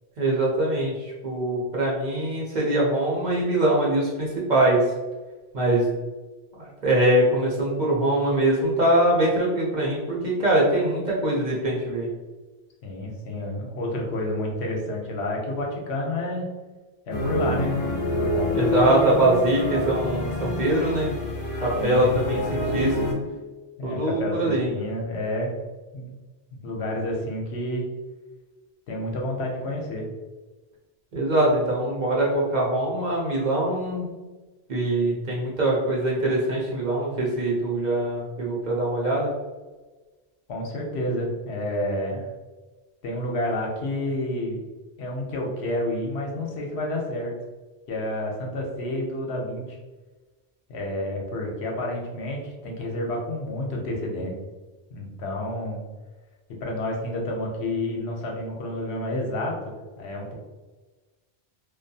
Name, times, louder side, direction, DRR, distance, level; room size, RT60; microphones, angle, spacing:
voice 1, 0.2-0.9 1.2-4.8 5.5-5.9 6.6-12.1 18.5-21.1 21.6-23.1 23.8-24.7 31.1-34.1 34.7-39.3, right 1 dB, 50° right, -4 dB, 0.7 m, -23 dB
voice 2, 12.8-16.5 17.1-17.8 18.1-18.6 21.8-22.2 23.8-25.5 25.9-26.0 26.6-27.8 28.9-30.1 40.5-42.3 43.0-44.6 45.0-47.3 47.9-49.8 50.7-54.3 54.9-55.8 56.6-60.3, left 1 dB, 75° left, 0 dB, 0.9 m, -29 dB
sound 1, 17.1-23.1, left 1 dB, 50° left, 0.6 m, -27 dB
2.6 x 2.2 x 2.6 m, 1.2 s
omnidirectional pair, 1.1 m